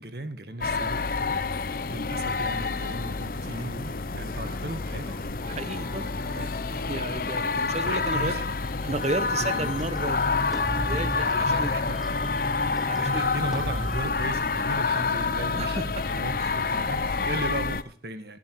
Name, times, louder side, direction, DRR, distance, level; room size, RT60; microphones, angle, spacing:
voice 1, 0.0-1.6 1.9-5.2 7.6-8.4 9.4-9.7 11.3-12.0 13.0-18.4, right 2 dB, 65° right, 9 dB, 1.8 m, -36 dB
sound 1, 0.6-17.8, left 4 dB, 55° left, 0.7 m, -28 dB
Fixed-wing aircraft airplane, 3.1-15.7, equal, 15° left, 4.3 m, -47 dB
voice 2, 5.5-8.4 8.8-11.7 12.8-13.2 15.5-15.9 16.4-16.5 17.0-17.1, right 2 dB, 40° right, 13 dB, 1.1 m, -33 dB
sound 2, 8.6-14.0, equal, ahead, 0.9 m, -36 dB
18.5 x 12.0 x 4.8 m, 0.40 s
head